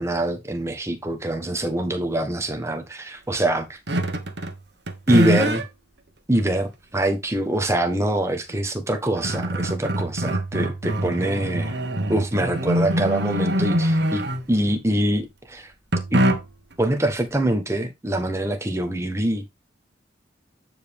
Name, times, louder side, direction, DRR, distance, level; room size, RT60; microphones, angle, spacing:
voice 1, 0.0-3.8 5.1-5.6 6.3-11.8 12.1-15.7 16.1-16.3 16.8-19.4, right 1 dB, 15° right, 1.2 m, -24 dB
sound 1, 3.9-4.6 4.9-5.7 6.4-6.5 8.5-8.6 8.9-14.7 15.9-16.7, equal, 60° right, 1.4 m, -24 dB
9.2 x 5.1 x 3.6 m
head